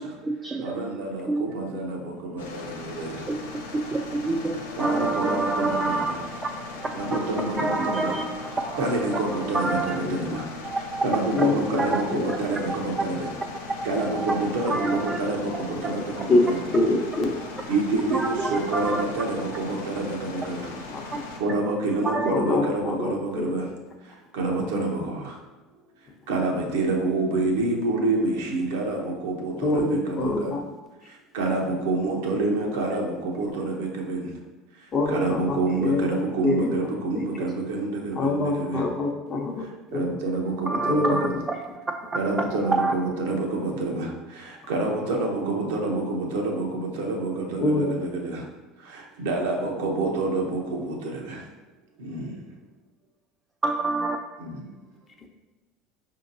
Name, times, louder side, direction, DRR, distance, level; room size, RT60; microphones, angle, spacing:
voice 1, 0.0-0.8 1.3-1.4 3.9-6.5 6.8-8.8 9.1-9.9 10.6-11.5 11.8-12.0 12.3-12.4 12.7-13.3 14.1-15.2 18.1-19.0 22.0-22.3 40.7-42.2 42.6-42.9 53.6-54.2, right 3 dB, 25° right, 3 dB, 0.3 m, -28 dB
voice 2, 0.6-3.3 4.8-6.2 7.0-8.2 8.6-10.4 11.0-13.3 13.8-16.6 17.7-20.7 21.0-21.1 21.4-23.6 24.0-25.4 26.3-30.5 31.1-34.3 34.7-38.8 39.6-41.4 42.1-48.5 48.8-51.4 52.0-52.4 54.4-54.7, right 2 dB, 75° right, 0 dB, 0.7 m, -28 dB
sound 1, 2.4-21.4, left 3 dB, 85° left, 0.5 m, -39 dB
voice 3, 11.3-11.8 12.1-12.3 16.3-17.4 20.9-21.2 22.3-23.5 29.6-30.6 34.9-36.9 37.1-37.3 38.1-40.1 40.8-41.3 47.6-48.1, left 2 dB, 35° left, 2 dB, 0.7 m, -25 dB
5.0 x 2.8 x 2.6 m, 1.1 s
hypercardioid pair, 80°, 0 cm